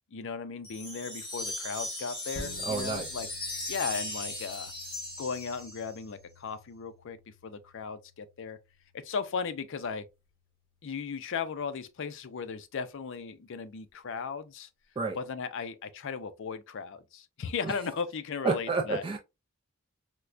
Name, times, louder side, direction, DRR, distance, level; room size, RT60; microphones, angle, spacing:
voice 1, 0.1-3.3 3.7-4.7 5.2-7.2 7.4-8.6 8.9-10.0 10.8-14.7 15.1-19.2, left 5 dB, 60° left, 0.4 m, -36 dB
sound 1, 0.6-6.0, left 1 dB, 20° left, 1.5 m, -38 dB
sound 2, 2.3-11.2 11.6-11.7, left 2 dB, 45° left, 1.4 m, -52 dB
voice 2, 2.7-3.1 15.0-15.2 17.6-17.7 18.4-19.2, right 4 dB, 25° right, 0.3 m, -30 dB
4.5 x 2.1 x 2.4 m
head